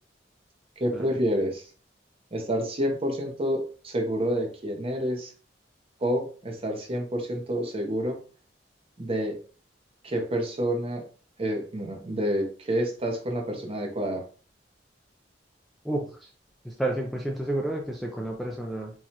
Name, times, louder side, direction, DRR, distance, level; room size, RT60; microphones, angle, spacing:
voice 1, 0.8-1.7 2.3-5.3 6.0-8.2 9.0-9.4 10.0-11.0 11.4-14.2, equal, 35° right, 2 dB, 0.8 m, -28 dB
voice 2, 15.8-16.3 16.6-18.9, right 1 dB, ahead, -2 dB, 0.4 m, -30 dB
4.7 x 2.3 x 2.8 m, 0.40 s
head